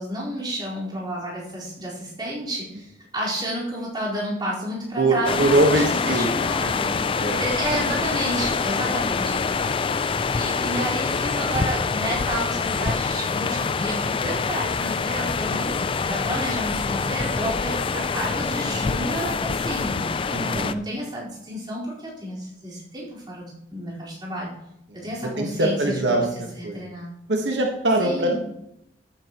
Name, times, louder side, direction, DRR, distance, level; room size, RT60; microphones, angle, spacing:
voice 1, 0.0-6.9 7.4-9.5 10.3-15.8 16.1-20.1 20.5-24.5 24.9-26.0 26.6-27.1 28.0-28.4, equal, 25° right, -7 dB, 4.6 m, -31 dB
voice 2, 5.0-6.3 7.2-7.4 9.8-10.3 20.3-20.7 24.9-25.0 25.4-26.3 26.6-26.8 27.3-28.3, right 2 dB, 90° right, 1 dB, 1.5 m, -22 dB
sound 1, 5.2-20.7, left 5 dB, 30° left, 0.4 m, -25 dB
14.0 x 9.0 x 3.1 m, 0.81 s
head